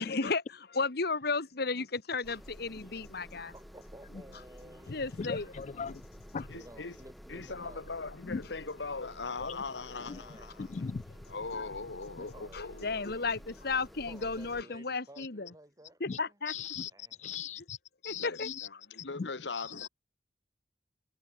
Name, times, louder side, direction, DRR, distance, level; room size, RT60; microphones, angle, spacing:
voice 1, 0.0-3.5 4.9-5.5 5.9-6.0 11.5-11.7 12.5-15.5 16.0-16.5 18.0-18.8 19.7-19.9, left 4 dB, 60° left, 1.6 m, -34 dB
sound 1, 2.2-14.6, equal, ahead, 5.5 m, -52 dB
voice 2, 3.5-5.5 6.5-7.8 10.0-10.6 12.2-13.1 14.1-16.3 16.9-17.2, right 1 dB, 20° right, 6.4 m, -54 dB
voice 3, 5.2-6.0 6.3-6.5 8.3-8.4 10.1-10.2 10.6-11.0 16.1-16.2 16.5-16.9 17.2-17.8 18.0-18.7 19.2-19.3 19.5-19.9, left 5 dB, 40° left, 0.4 m, -38 dB
voice 4, 6.5-7.0 7.3-10.8 11.3-12.9 18.2-19.9, left 4 dB, 90° left, 1.4 m, -40 dB
head